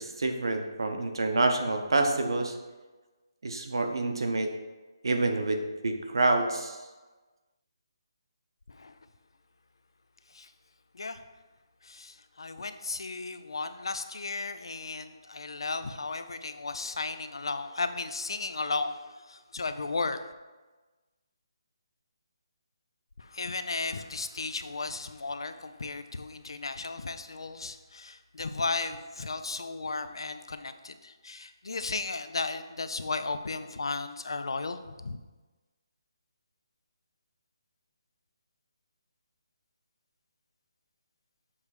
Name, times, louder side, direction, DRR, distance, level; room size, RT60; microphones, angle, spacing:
voice 1, 0.0-2.6 3.4-4.5 5.0-6.8, right 2 dB, 65° right, 5 dB, 0.8 m, -27 dB
voice 2, 11.8-20.2 23.2-35.2, left 3 dB, 75° left, 10 dB, 0.5 m, -35 dB
7.1 x 3.3 x 4.8 m, 1.2 s
hypercardioid pair, 180°, 3 cm